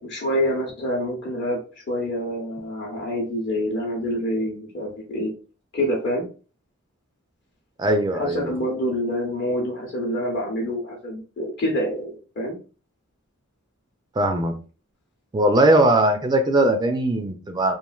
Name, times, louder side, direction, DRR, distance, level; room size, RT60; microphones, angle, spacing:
voice 1, 0.0-1.6 1.9-5.3 5.7-6.3 8.1-12.1 12.4-12.6, equal, 55° left, -3 dB, 0.8 m, -26 dB
voice 2, 7.8-8.6 14.2-14.6 15.3-17.7, right 1 dB, 20° right, 6 dB, 0.3 m, -20 dB
3.0 x 2.5 x 2.3 m, 0.36 s
head